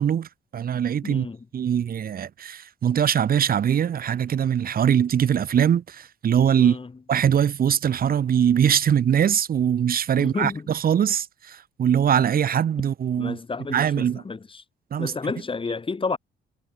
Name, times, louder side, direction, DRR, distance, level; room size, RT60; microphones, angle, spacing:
voice 1, 0.0-1.3 1.5-6.8 7.1-13.4 13.7-14.2 14.9-15.1, right 9 dB, 45° right, 0.9 m, -22 dB
voice 2, 1.0-1.4 6.6-6.9 10.2-10.7 13.2-14.6 15.0-16.2, left 4 dB, 25° left, 1.9 m, -31 dB
cardioid pair, 90°, 20 cm